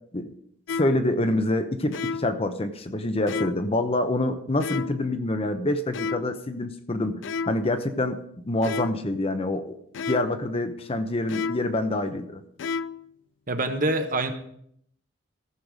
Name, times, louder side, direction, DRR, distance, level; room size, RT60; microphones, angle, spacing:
sound 1, 0.7-1.1 1.9-2.4 3.3-3.7 4.6-5.1 5.9-6.4 7.2-7.7 8.6-9.1 9.9-10.4 11.3-11.8 12.6-13.1, left 5 dB, 65° left, 0.4 m, -32 dB
voice 1, 0.7-8.2 8.4-9.7 10.1-12.4, left 1 dB, 30° left, 8 dB, 0.7 m, -26 dB
voice 2, 13.5-14.3, right 2 dB, 40° right, 7 dB, 1.0 m, -25 dB
14.5 x 6.6 x 5.1 m, 0.69 s
head